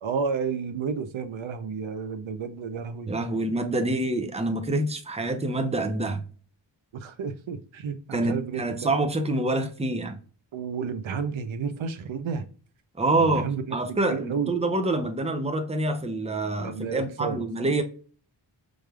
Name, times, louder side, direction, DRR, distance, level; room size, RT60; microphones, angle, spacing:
voice 1, 0.0-3.1 3.8-3.9 6.9-8.9 10.5-12.4 13.2-14.5 16.6-17.4, right 6 dB, 85° right, 0.7 m, -31 dB
voice 2, 3.1-6.2 8.1-10.2 13.0-13.5 13.7-17.8, right 2 dB, 15° right, 0.7 m, -26 dB
5.1 x 3.2 x 2.3 m
wide cardioid pair, 100°, 46 cm